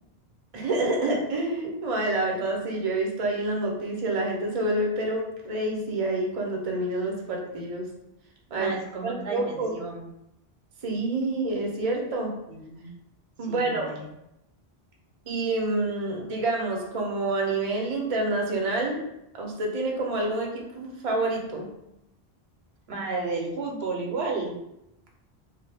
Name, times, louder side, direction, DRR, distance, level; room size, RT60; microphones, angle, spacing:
voice 1, 0.5-7.9 8.5-8.7 9.0-9.7 10.8-12.3 13.4-13.9 15.3-19.0 19.3-21.6, right 2 dB, 40° right, 0 dB, 0.6 m, -28 dB
voice 2, 8.5-10.0 12.5-12.9 13.5-14.1 22.9-24.5, right 3 dB, 80° right, -1 dB, 0.9 m, -32 dB
2.7 x 2.1 x 3.3 m, 0.84 s
omnidirectional pair, 1.1 m